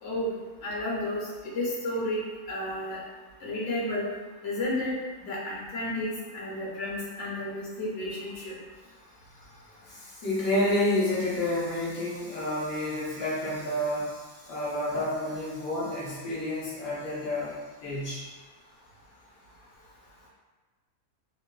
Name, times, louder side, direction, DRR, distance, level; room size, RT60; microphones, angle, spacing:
voice 1, 0.0-0.3 0.6-2.2 2.5-3.0 3.4-4.0 4.4-4.9 5.2-8.6, left 1 dB, 60° left, -6 dB, 1.2 m, -32 dB
voice 2, 9.6-18.2, left 1 dB, 80° left, -7 dB, 1.2 m, -30 dB
3.5 x 2.6 x 2.3 m, 1.3 s
omnidirectional pair, 1.5 m